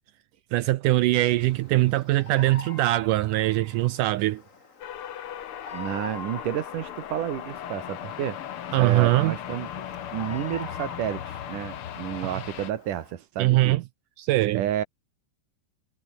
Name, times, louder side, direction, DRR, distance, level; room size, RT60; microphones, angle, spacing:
voice 1, 0.5-4.4 8.7-9.3 13.4-13.8 14.2-14.6, right 17 dB, 90° right, 1.8 m, -22 dB
Bird vocalization bird call bird song, 1.3-13.1, left 4 dB, 30° left, 1.5 m, -46 dB
sound 1, 4.8-12.7, left 10 dB, 75° left, 1.2 m, -37 dB
voice 2, 5.7-8.4 8.8-9.8 10.1-13.8 14.5-14.8, right 11 dB, 65° right, 2.6 m, -31 dB
omnidirectional pair, 4.5 m